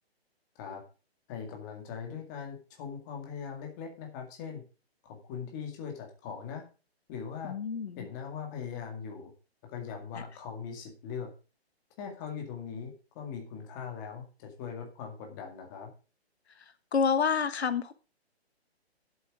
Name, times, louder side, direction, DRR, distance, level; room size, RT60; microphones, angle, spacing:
voice 1, 1.3-4.6 5.0-6.6 7.1-7.6 8.0-9.3 9.7-11.3 12.0-15.9, left 6 dB, 15° left, 2 dB, 2.0 m, -40 dB
voice 2, 7.4-8.1 16.9-17.9, left 6 dB, 80° left, 12 dB, 1.3 m, -28 dB
11.0 x 8.0 x 4.8 m, 0.33 s
hypercardioid pair, 170°, 32 cm